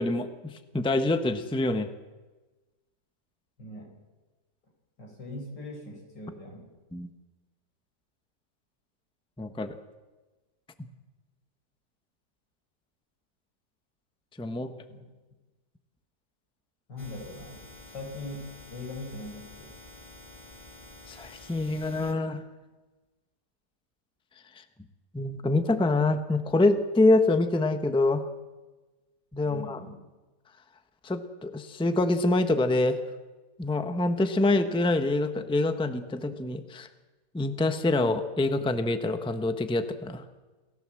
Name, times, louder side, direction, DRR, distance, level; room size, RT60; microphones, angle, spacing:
voice 1, 0.0-1.9 6.9-7.1 9.4-9.8 14.4-14.7 21.1-22.4 24.5-24.6 25.1-28.3 29.3-29.8 31.0-33.0 33.6-36.9 37.3-40.2, left 2 dB, 5° left, 8 dB, 0.9 m, -26 dB
voice 2, 3.6-3.9 5.0-6.7 14.5-15.1 16.9-19.7 29.5-29.9, left 1 dB, 90° left, 2 dB, 5.9 m, -41 dB
sound 1, 17.0-22.1, left 2 dB, 25° left, 2.1 m, -49 dB
28.5 x 16.0 x 7.7 m, 1.2 s
omnidirectional pair, 1.9 m